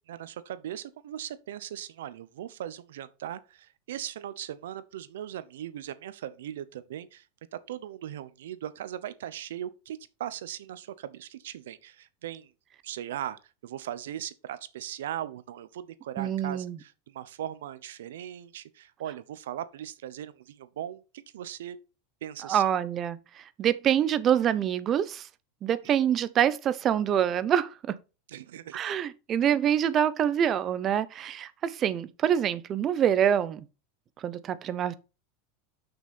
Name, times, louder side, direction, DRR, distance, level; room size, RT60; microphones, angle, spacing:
voice 1, 0.1-7.3 7.5-12.5 12.8-21.8 22.2-22.6 28.3-28.9, right 11 dB, 90° right, 0.9 m, -39 dB
voice 2, 16.2-16.8 22.4-25.3 25.6-28.0 28.7-33.6 34.2-34.9, right 9 dB, 35° right, 0.8 m, -26 dB
6.6 x 6.2 x 5.4 m
supercardioid pair, 130°, 0 cm